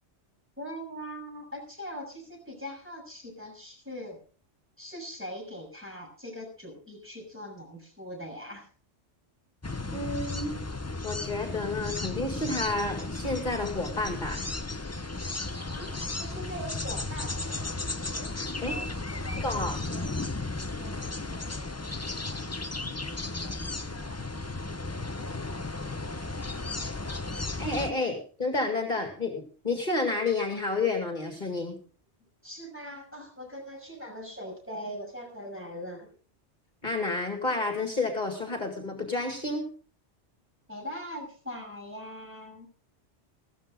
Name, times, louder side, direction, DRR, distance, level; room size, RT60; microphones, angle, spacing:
voice 1, 0.6-4.2 4.8-8.6 15.7-18.3 18.7-19.4 19.8-20.1 20.7-22.5 22.7-24.3 25.0-27.6 32.4-36.1 40.7-42.7, equal, 10° right, -1 dB, 6.5 m, -42 dB
sound 1, 9.6-27.9, left 2 dB, 15° left, 0.6 m, -34 dB
voice 2, 9.9-10.5 11.0-14.5 18.6-18.7 19.4-19.8 27.6-31.8 36.8-39.7, left 3 dB, 45° left, 3 dB, 2.2 m, -30 dB
15.5 x 14.0 x 3.7 m, 0.40 s
omnidirectional pair, 1.1 m